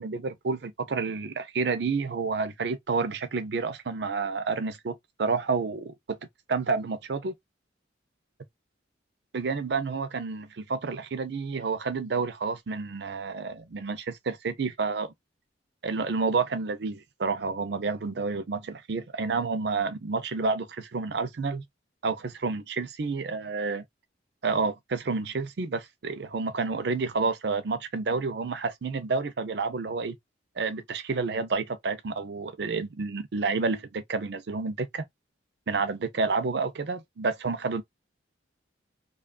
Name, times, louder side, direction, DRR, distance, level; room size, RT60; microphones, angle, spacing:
voice 1, 0.0-5.9 6.5-7.3 9.3-15.1 15.8-21.6 22.0-23.8 24.4-30.2 30.6-35.0 35.7-37.8, right 4 dB, 60° right, 0.5 m, -29 dB
2.7 x 2.3 x 2.3 m
head